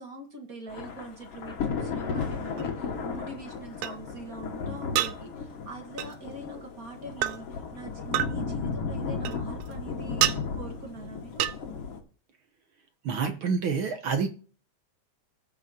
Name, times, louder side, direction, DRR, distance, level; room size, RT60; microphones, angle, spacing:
voice 1, 0.0-10.3 10.5-11.5, right 2 dB, 35° right, 1.7 m, -43 dB
Thunder / Rain, 0.7-12.0, left 5 dB, 55° left, 2.4 m, -35 dB
sound 1, 2.6-2.7 3.8-3.9 5.0-5.1 6.0-6.1 7.2-7.4 8.1-8.3 9.3-9.7 10.2-10.4 11.4-11.6, right 13 dB, 80° right, 2.0 m, -26 dB
voice 2, 13.0-14.3, right 5 dB, 65° right, 1.3 m, -27 dB
18.5 x 6.5 x 2.8 m
omnidirectional pair, 3.3 m